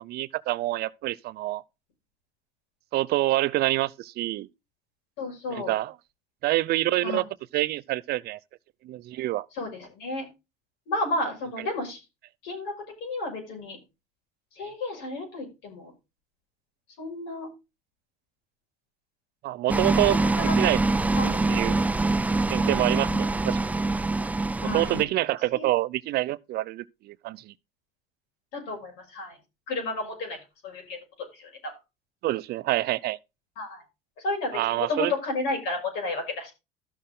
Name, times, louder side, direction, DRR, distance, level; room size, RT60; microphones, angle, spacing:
voice 1, 0.0-1.6 2.9-4.5 5.5-5.9 6.4-7.2 7.5-8.4 8.8-9.5 19.4-20.2 20.6-20.8 21.5-21.8 22.5-23.7 24.6-27.5 32.2-33.2 34.5-35.1, right 16 dB, 60° right, 0.6 m, -26 dB
voice 2, 5.2-5.7 7.0-7.2 9.5-10.3 10.9-12.0 12.4-12.7 13.0-13.8 14.5-15.9 17.0-17.5 19.7-20.5 21.1-21.4 22.9-23.2 24.6-25.1 25.5-25.7 28.5-29.4 29.7-30.4 30.6-31.7 33.6-33.8 34.2-36.5, left 2 dB, 75° left, 6.0 m, -32 dB
sound 1, 19.7-25.0, right 2 dB, 10° right, 0.4 m, -24 dB
13.0 x 6.7 x 3.8 m
supercardioid pair, 100°, 18 cm